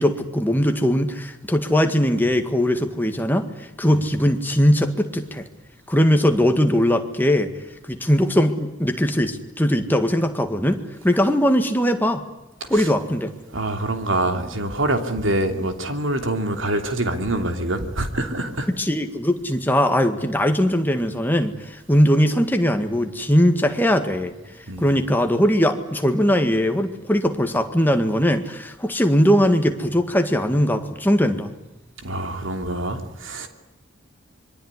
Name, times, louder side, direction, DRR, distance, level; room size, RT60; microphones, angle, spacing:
voice 1, 0.0-3.5 3.8-5.5 5.9-7.5 7.9-12.2 12.7-13.3 18.8-24.3 24.8-31.5, equal, 10° left, 1.9 m, -20 dB
voice 2, 13.5-18.7 24.7-24.9 32.0-33.5, right 1 dB, 70° right, 2.9 m, -25 dB
25.5 x 23.0 x 9.8 m
head